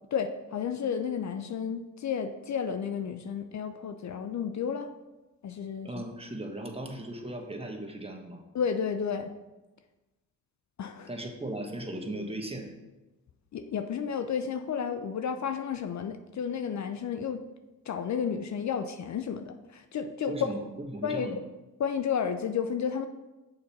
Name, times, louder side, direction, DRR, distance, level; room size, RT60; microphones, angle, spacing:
voice 1, 0.0-4.9 5.4-6.0 8.5-9.3 10.8-11.1 13.5-17.4 17.9-20.5 21.0-21.3 21.8-23.1, left 7 dB, 55° left, 8 dB, 0.5 m, -32 dB
voice 2, 5.8-8.4 11.1-12.7 20.3-20.6 20.9-21.4, right 1 dB, 15° right, 2 dB, 1.3 m, -37 dB
6.4 x 4.3 x 5.4 m, 1.1 s
supercardioid pair, 55°, 34 cm